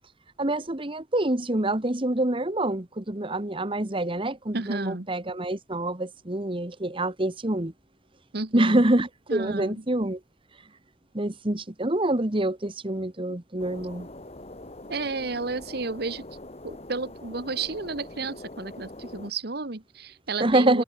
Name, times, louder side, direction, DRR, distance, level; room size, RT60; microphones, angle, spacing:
voice 1, 0.4-7.7 8.5-10.2 11.1-14.1 20.4-20.8, right 1 dB, 30° right, 1.6 m, -26 dB
voice 2, 4.5-5.1 8.3-8.8 9.3-9.8 14.9-16.2 16.6-20.8, right 3 dB, 60° right, 1.5 m, -32 dB
sound 1, 13.6-19.3, left 1 dB, 35° left, 3.3 m, -43 dB
open air
head